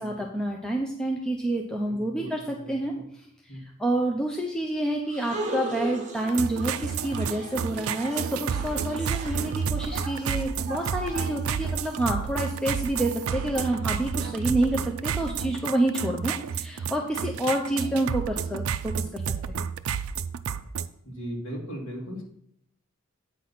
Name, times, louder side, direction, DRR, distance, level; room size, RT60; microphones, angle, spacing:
voice 1, 0.0-3.3 3.5-19.2 19.5-19.7, right 1 dB, 5° left, 0 dB, 0.5 m, -28 dB
voice 2, 1.9-3.0 3.5-3.6 21.0-22.2, equal, 65° left, -2 dB, 2.2 m, -38 dB
sound 1, 5.1-12.0, right 2 dB, 35° right, 1.2 m, -38 dB
sound 2, 6.2-20.9, right 7 dB, 75° right, 0.4 m, -31 dB
8.4 x 4.1 x 5.9 m, 0.71 s
head